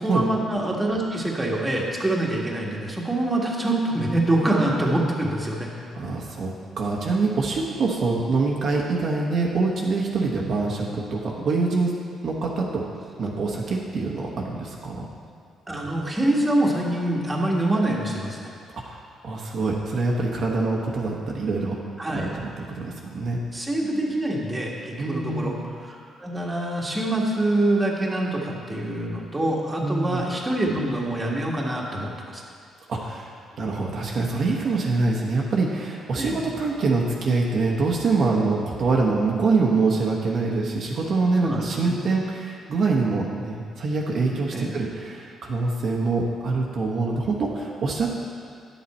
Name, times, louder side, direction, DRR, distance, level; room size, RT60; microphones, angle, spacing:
voice 1, 0.0-5.7 15.7-18.5 22.0-22.3 23.5-32.4 36.2-36.4 41.4-42.0 44.5-44.7, right 1 dB, 15° right, -3 dB, 1.6 m, -25 dB
voice 2, 6.0-12.0 12.2-12.8 13.2-15.0 18.7-21.8 22.1-23.4 25.0-25.6 29.8-30.2 32.9-48.1, right 3 dB, 60° right, -2 dB, 1.1 m, -25 dB
10.0 x 7.0 x 4.3 m, 2.3 s
cardioid pair, 90°, 0 cm